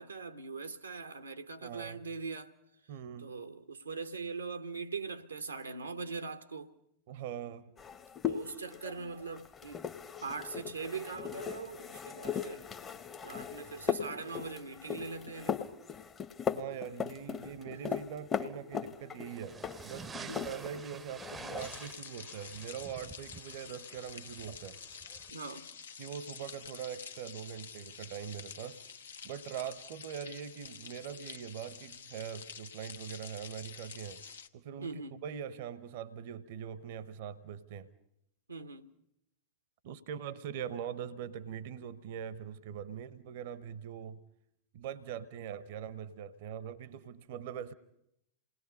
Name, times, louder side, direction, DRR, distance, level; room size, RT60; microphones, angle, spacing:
voice 1, 0.0-2.5 3.2-6.7 8.3-9.9 10.2-12.7 13.2-15.6 17.9-18.0 20.3-20.5 25.3-25.7 34.8-35.2 38.5-38.9, right 4 dB, 80° right, 1.0 m, -41 dB
voice 2, 1.6-2.0 2.9-3.3 7.1-7.7 16.5-19.6 19.8-24.8 26.0-28.8 29.2-34.2 34.5-37.9 39.8-44.2 44.7-47.7, right 8 dB, 50° right, 0.9 m, -42 dB
sound 1, 7.8-20.9 21.1-21.8, left 8 dB, 25° left, 0.9 m, -38 dB
sound 2, 19.3-25.3, right 5 dB, 15° right, 0.7 m, -49 dB
sound 3, 21.6-34.5, left 6 dB, 70° left, 0.8 m, -48 dB
28.0 x 20.0 x 5.4 m
figure-of-eight pair, 90°, 0 cm